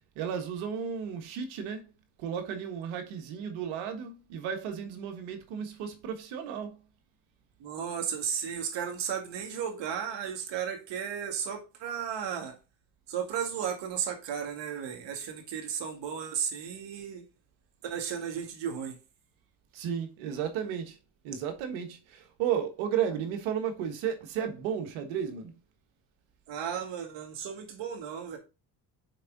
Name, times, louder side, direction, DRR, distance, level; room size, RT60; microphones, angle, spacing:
voice 1, 0.1-1.9 2.2-6.8 19.7-21.0 21.2-25.5, right 8 dB, 85° right, 1.5 m, -33 dB
voice 2, 7.6-12.6 13.1-17.3 17.8-19.0 26.5-28.4, right 8 dB, 65° right, 2.2 m, -34 dB
6.6 x 4.6 x 4.0 m
supercardioid pair, 80°, 46 cm